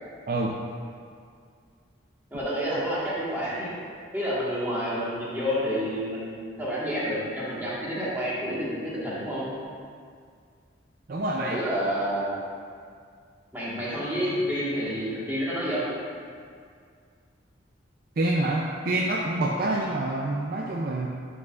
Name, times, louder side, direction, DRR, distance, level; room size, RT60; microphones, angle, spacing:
voice 1, 2.3-3.7 4.1-9.5 11.4-12.3 13.5-15.9, equal, 10° right, -9 dB, 1.5 m, -29 dB
voice 2, 11.1-11.6 18.2-21.1, right 2 dB, 50° right, -2 dB, 0.4 m, -27 dB
11.0 x 4.7 x 2.4 m, 2.2 s
head